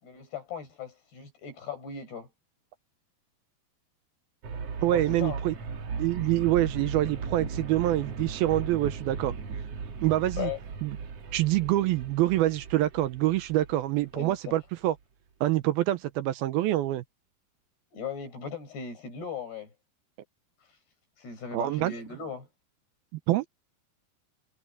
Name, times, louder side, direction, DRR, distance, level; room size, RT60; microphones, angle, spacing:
voice 1, 0.0-2.3 4.9-5.4 10.4-10.6 14.1-14.6 17.9-19.7 21.2-22.5, left 7 dB, 75° left, 9.2 m, -38 dB
sound 1, 4.4-14.4, right 5 dB, 45° right, 2.4 m, -37 dB
voice 2, 4.8-5.5 6.0-9.3 10.0-10.5 10.8-10.9 11.3-14.9 15.4-17.0 21.5-21.9 23.1-23.5, right 15 dB, 75° right, 2.5 m, -26 dB
omnidirectional pair, 4.7 m